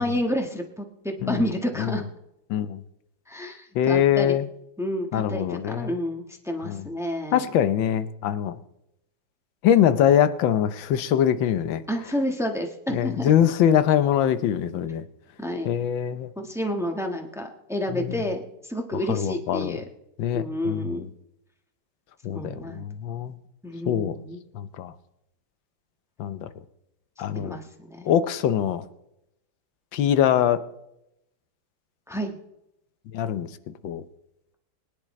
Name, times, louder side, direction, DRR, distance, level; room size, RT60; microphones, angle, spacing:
voice 1, 0.0-2.0 3.3-4.4 4.8-7.5 11.9-13.3 15.4-15.8 16.4-19.8 20.3-21.1 22.3-22.8 23.6-24.4 27.3-28.1 32.1-32.4, equal, ahead, 3 dB, 1.0 m, -30 dB
voice 2, 2.5-2.8 3.7-4.5 5.1-6.0 6.6-6.8 7.3-8.6 9.6-11.8 12.9-15.0 15.6-16.3 17.9-18.2 19.1-19.8 20.2-21.1 22.2-23.4 23.9-24.1 24.5-24.9 26.2-26.5 27.2-27.6 28.0-28.8 29.9-30.6 33.1-34.0, left 9 dB, 80° left, 13 dB, 1.5 m, -23 dB
23.5 x 10.0 x 3.2 m, 0.84 s
omnidirectional pair, 2.1 m